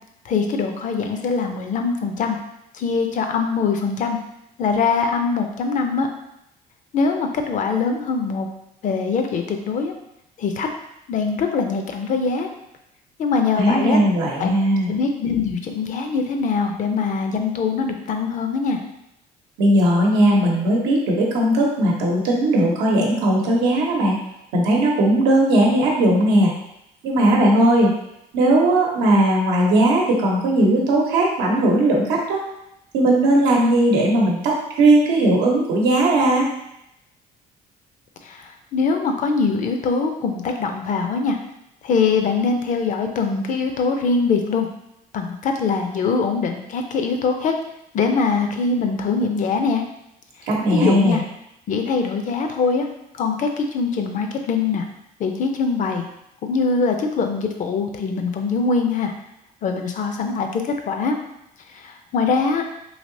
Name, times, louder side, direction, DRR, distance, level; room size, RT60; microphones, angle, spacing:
voice 1, 0.2-2.4 2.7-4.2 4.6-6.1 6.9-8.5 8.8-9.9 10.4-10.7 11.1-12.5 13.2-14.0 14.4-14.5 14.9-18.8 38.2-41.4 41.8-44.7 45.1-47.5 47.9-49.8 50.7-51.2 51.7-52.9 53.1-54.9 55.2-56.1 56.4-59.1 59.6-61.2 61.7-62.6, left 4 dB, 50° left, 5 dB, 0.5 m, -22 dB
voice 2, 13.6-14.9 19.6-24.2 24.5-26.5 27.0-27.9 28.3-32.4 32.9-36.5 50.5-51.2, right 1 dB, 90° right, -1 dB, 0.8 m, -18 dB
3.3 x 2.8 x 2.6 m, 0.82 s
cardioid pair, 110°, 17 cm